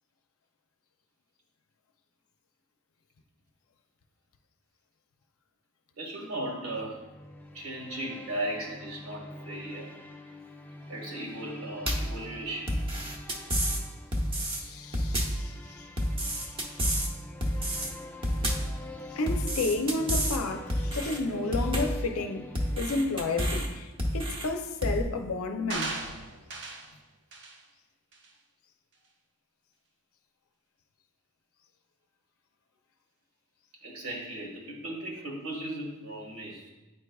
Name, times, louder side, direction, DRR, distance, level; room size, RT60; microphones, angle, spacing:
voice 1, 6.0-7.0 7.5-9.9 10.9-12.8 33.8-36.6, right 1 dB, 75° right, 1.6 m, -37 dB
sound 1, 6.5-24.2, left 1 dB, 10° left, 0.3 m, -46 dB
sound 2, 11.9-12.2 12.7-13.8 14.1-14.6 14.9-15.4 16.0-17.1 17.4-17.9 18.2-18.7 19.3-20.4 20.7-21.2 21.5-22.0 22.5-23.7 24.0-24.5 24.8-25.0, equal, 25° right, 0.8 m, -29 dB
voice 2, 14.5-15.8 16.4-16.5 19.1-22.5 22.8-25.9, left 3 dB, 85° left, 0.6 m, -31 dB
sound 3, 25.7-26.9 27.3-27.6 28.1-28.3, right 3 dB, 55° right, 0.7 m, -37 dB
8.9 x 4.7 x 2.3 m
head